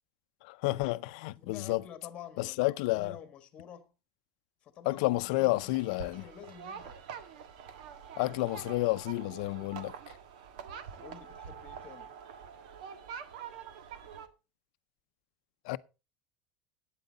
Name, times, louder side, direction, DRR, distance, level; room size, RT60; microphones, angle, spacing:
voice 1, 0.4-1.8 2.4-3.1 4.9-6.2 8.2-9.9 15.6-15.8, left 20 dB, 60° left, 0.6 m, -30 dB
voice 2, 1.4-3.9 4.6-7.1 11.0-12.2, left 9 dB, 25° left, 1.5 m, -50 dB
sound 1, 5.1-14.3, right 7 dB, 80° right, 1.5 m, -46 dB
12.0 x 9.1 x 4.0 m
cardioid pair, 175°, 4 cm